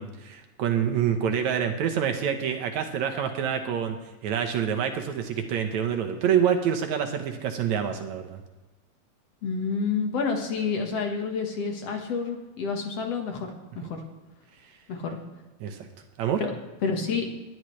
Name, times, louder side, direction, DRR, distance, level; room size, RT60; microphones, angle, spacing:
voice 1, 0.0-4.0 4.2-8.4 13.8-13.9 15.6-15.9 16.2-16.4, right 8 dB, 70° right, 6 dB, 2.2 m, -27 dB
voice 2, 9.4-14.0 14.9-15.2 16.4-16.5 16.8-17.3, left 5 dB, 55° left, 3 dB, 2.1 m, -29 dB
20.0 x 11.5 x 3.2 m, 1.2 s
omnidirectional pair, 3.7 m